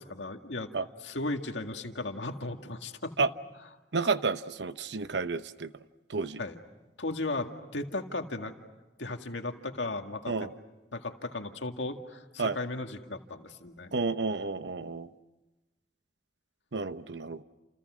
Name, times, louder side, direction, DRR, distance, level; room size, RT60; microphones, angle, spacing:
voice 1, 0.0-0.7 1.0-3.1 6.4-6.6 7.0-8.5 9.0-10.5 10.9-14.0, left 2 dB, 85° left, 5 dB, 2.0 m, -36 dB
voice 2, 3.9-5.7 6.1-6.4 10.3-10.5 12.4-12.6 13.9-15.1 16.7-17.4, right 4 dB, 70° right, 12 dB, 0.9 m, -30 dB
29.5 x 29.0 x 6.3 m, 1.1 s
head